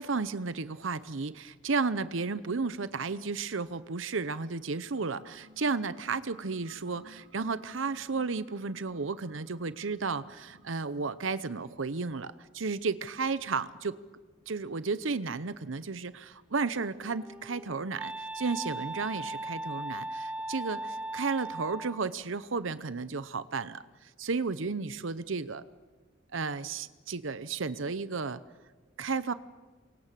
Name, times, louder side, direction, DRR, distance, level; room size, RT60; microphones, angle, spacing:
voice 1, 0.0-14.0 14.5-25.6 26.3-28.4 29.0-29.3, right 4 dB, 80° right, 15 dB, 0.8 m, -33 dB
sound 1, 4.7-11.5, right 1 dB, 60° right, 2.2 m, -57 dB
Wind instrument woodwind instrument, 17.0-22.1, right 2 dB, 5° right, 0.8 m, -38 dB
28.5 x 24.0 x 7.6 m, 1.3 s
head